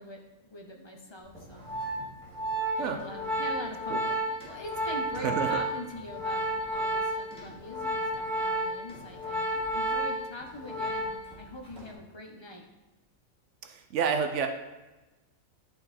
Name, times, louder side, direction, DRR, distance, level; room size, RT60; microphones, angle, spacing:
voice 1, 0.0-1.7 2.7-9.5 9.7-12.7, left 1 dB, 25° left, 2 dB, 0.7 m, -43 dB
Organ, 1.3-11.4 11.6-11.9, right 1 dB, 5° left, 2.3 m, -32 dB
voice 2, 5.2-5.6 13.7-14.5, right 6 dB, 65° right, 6 dB, 0.9 m, -29 dB
10.5 x 3.8 x 4.2 m, 1.1 s
omnidirectional pair, 1.4 m